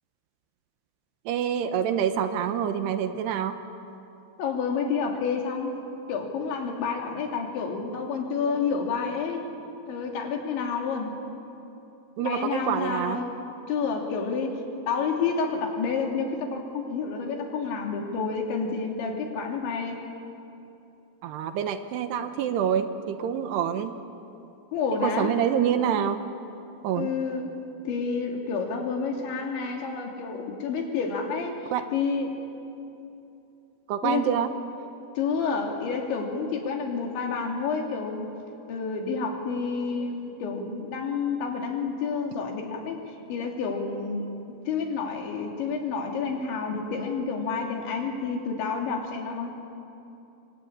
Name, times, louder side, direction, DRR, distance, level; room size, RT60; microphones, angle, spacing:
voice 1, 1.3-3.6 12.2-13.2 21.2-24.0 25.0-26.2 26.8-27.1 31.7-31.8 33.9-34.5, right 9 dB, 75° right, 9 dB, 3.0 m, -26 dB
voice 2, 4.4-5.8 6.1-9.4 9.9-11.2 12.2-13.3 13.7-20.0 24.7-25.3 26.9-27.5 27.9-31.5 31.9-32.4 34.0-34.3 35.2-38.3 38.7-43.0 43.3-44.3 44.7-49.5, left 5 dB, 80° left, 1 dB, 5.2 m, -29 dB
27.5 x 25.0 x 8.8 m, 2.8 s
omnidirectional pair, 5.2 m